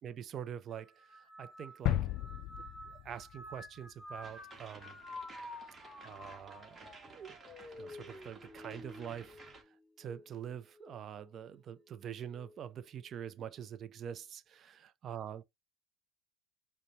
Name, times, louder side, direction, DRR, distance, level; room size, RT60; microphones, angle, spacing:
voice 1, 0.0-2.1 2.9-5.0 6.0-7.4 7.8-9.4 9.7-14.7 15.0-15.4, right 9 dB, 40° right, 0.5 m, -45 dB
sound 1, 0.7-10.3 10.7-11.3 12.3-12.7, left 1 dB, 10° left, 1.4 m, -51 dB
sound 2, 1.9-3.8 4.2-4.3, left 13 dB, 55° left, 0.3 m, -35 dB
sound 3, 4.2-9.6, right 4 dB, 25° right, 1.3 m, -55 dB
5.0 x 2.2 x 3.1 m
supercardioid pair, 95°, 0 cm